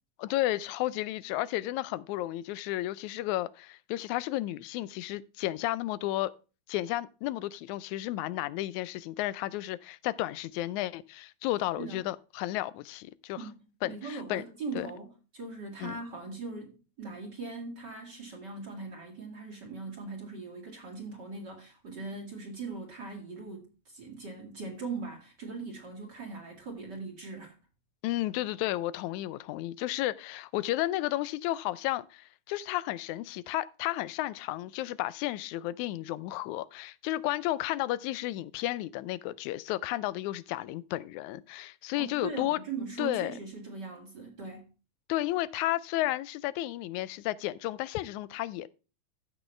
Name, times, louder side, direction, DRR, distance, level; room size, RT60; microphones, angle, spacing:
voice 1, 0.2-6.3 6.7-13.5 13.8-14.4 14.7-14.9 15.8-16.0 28.0-42.6 43.0-43.3 45.1-48.7, left 16 dB, 85° left, 2.0 m, -32 dB
voice 2, 13.4-27.5 42.0-44.7, right 4 dB, 40° right, 2.3 m, -40 dB
14.0 x 6.2 x 3.2 m
omnidirectional pair, 3.3 m